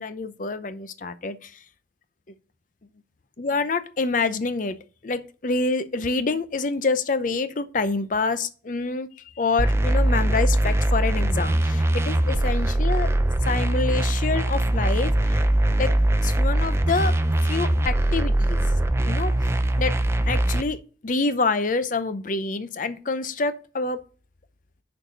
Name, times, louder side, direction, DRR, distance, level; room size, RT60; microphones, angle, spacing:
voice 1, 0.0-1.5 3.4-4.8 5.0-9.1 9.4-13.1 13.5-15.4 15.8-15.9 16.2-17.2 17.5-18.6 19.1-19.3 19.8-19.9 20.3-24.0, left 3 dB, 45° left, 0.6 m, -27 dB
sound 1, 9.6-20.6, right 1 dB, 15° right, 0.4 m, -22 dB
6.3 x 4.7 x 6.5 m
head